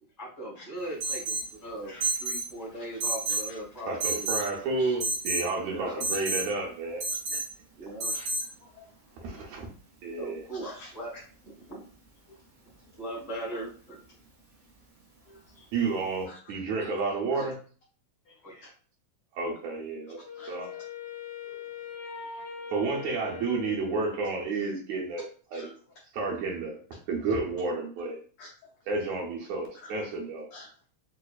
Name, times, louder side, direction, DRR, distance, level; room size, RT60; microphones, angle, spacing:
voice 1, 0.2-4.7 5.6-6.1 7.8-8.1 10.1-11.1 11.4-11.8 13.0-14.0 17.4-17.5 18.4-18.7, right 1 dB, 25° left, -5 dB, 1.1 m, -39 dB
Alarm, 1.0-1.5 2.0-2.5 3.0-3.5 4.0-4.5 5.0-5.5 6.0-6.5 7.0-7.5 8.0-8.5, right 2 dB, 50° right, 1.2 m, -29 dB
voice 2, 3.9-7.0 7.3-7.4 9.2-9.7 10.0-10.5 15.7-17.6 19.3-20.7 22.7-25.7 26.1-26.8 27.1-28.2 28.9-30.5, right 3 dB, 75° right, -2 dB, 2.0 m, -31 dB
voice 3, 15.3-15.7 16.3-16.4 16.8-16.9 17.3-17.5 18.3-18.4 20.4-20.8 21.5-21.6 22.2-22.4 25.5-25.7 28.4-28.5 29.8-29.9 30.5-30.9, left 2 dB, 90° left, -1 dB, 1.2 m, -49 dB
Wind instrument woodwind instrument, 20.2-24.6, left 7 dB, 70° left, 1.1 m, -41 dB
4.8 x 2.5 x 2.3 m, 0.41 s
omnidirectional pair, 3.3 m